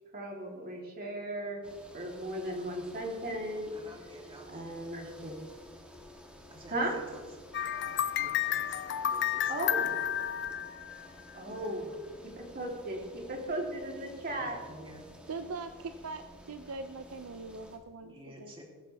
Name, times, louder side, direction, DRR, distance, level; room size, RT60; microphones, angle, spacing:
voice 1, 0.1-1.6 1.9-3.7 4.5-5.4 6.7-6.9 9.5-9.9 11.3-11.9 12.4-14.6, right 1 dB, 45° right, -1 dB, 3.4 m, -36 dB
sound 1, 1.6-17.8, equal, 5° right, 1.8 m, -53 dB
voice 2, 3.7-4.6 6.5-7.2 7.8-9.7 11.4-11.7 14.2-15.1 18.0-18.6, equal, 25° right, -2 dB, 3.3 m, -51 dB
sound 2, 7.5-11.3, left 10 dB, 55° left, 0.6 m, -31 dB
voice 3, 15.3-18.6, right 3 dB, 75° right, 8 dB, 0.6 m, -42 dB
21.0 x 12.0 x 3.5 m, 1.5 s
head